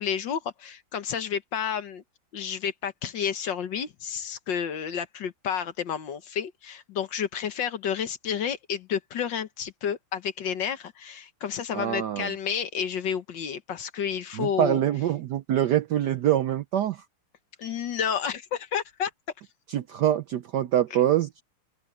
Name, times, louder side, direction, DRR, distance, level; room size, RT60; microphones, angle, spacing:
voice 1, 0.0-2.0 2.3-14.8 17.6-19.1, left 8 dB, 60° left, 1.7 m, -30 dB
voice 2, 11.7-12.3 14.3-17.0 19.7-21.4, right 11 dB, 70° right, 1.0 m, -25 dB
open air
omnidirectional pair, 2.4 m